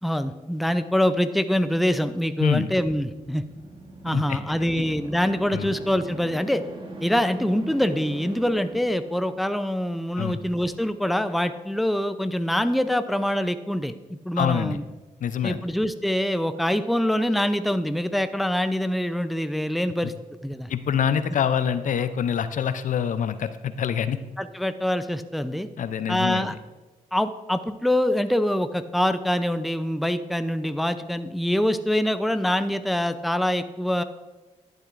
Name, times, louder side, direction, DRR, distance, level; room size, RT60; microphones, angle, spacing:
voice 1, 0.0-3.4 4.0-6.6 7.0-14.8 15.4-20.1 20.4-20.7 24.4-25.7 26.1-26.6 27.1-34.0, equal, ahead, 10 dB, 0.5 m, -25 dB
voice 2, 2.4-2.7 4.1-4.4 5.5-5.7 10.2-10.4 14.4-14.8 15.2-15.6 20.7-24.2 25.8-26.6, left 8 dB, 65° left, 12 dB, 0.5 m, -25 dB
sound 1, 2.9-9.7, right 2 dB, 35° right, 1.3 m, -41 dB
11.0 x 7.7 x 2.5 m, 1.2 s
supercardioid pair, 55°, 14 cm